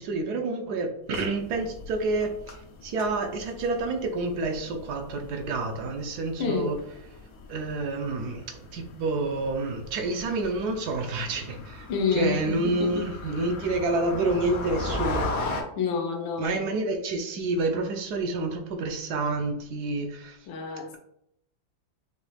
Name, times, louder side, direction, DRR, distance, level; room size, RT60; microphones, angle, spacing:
voice 1, 0.0-6.8 7.5-11.9 12.1-15.4 16.4-20.5, right 3 dB, 70° right, 4 dB, 1.0 m, -29 dB
sound 1, 1.1-15.6, left 2 dB, 65° left, 1.2 m, -38 dB
voice 2, 6.4-6.7 11.9-13.1 15.8-16.5 20.5-21.0, left 5 dB, 85° left, 2 dB, 1.4 m, -28 dB
5.1 x 3.1 x 2.3 m, 0.75 s
omnidirectional pair, 2.1 m